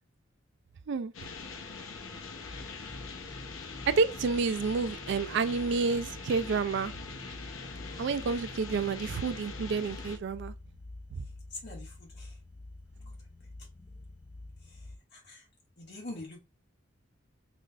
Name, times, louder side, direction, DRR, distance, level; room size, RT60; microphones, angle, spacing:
sound 1, 1.1-10.2, left 4 dB, 80° left, 0.7 m, -43 dB
sound 2, 2.4-15.0, left 2 dB, 25° left, 0.4 m, -48 dB
sound 3, 2.5-10.1, right 1 dB, 30° right, 1.7 m, -52 dB
voice 1, 3.9-6.9 8.0-10.5 11.2-11.3, right 4 dB, 60° right, 0.3 m, -29 dB
voice 2, 11.5-12.4 14.7-14.9 15.1-15.5 15.8-16.4, left 2 dB, 55° left, 1.8 m, -45 dB
3.7 x 3.2 x 2.4 m
head